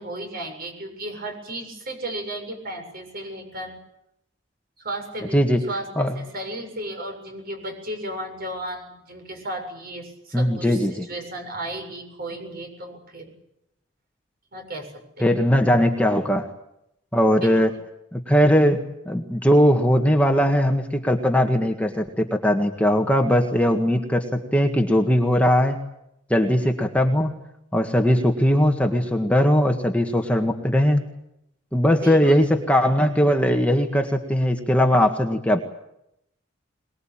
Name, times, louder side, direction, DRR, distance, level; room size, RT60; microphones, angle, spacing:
voice 1, 0.0-3.8 4.8-5.9 6.1-13.3 14.5-14.9 15.2-15.3 17.4-17.8 32.0-32.4, right 1 dB, 50° right, 5 dB, 7.4 m, -34 dB
voice 2, 10.3-11.1 15.2-16.5 17.1-17.7 18.1-25.8 26.3-27.4 27.7-31.1 31.7-35.6, equal, 5° left, 3 dB, 1.8 m, -20 dB
23.0 x 22.0 x 8.9 m, 0.80 s
head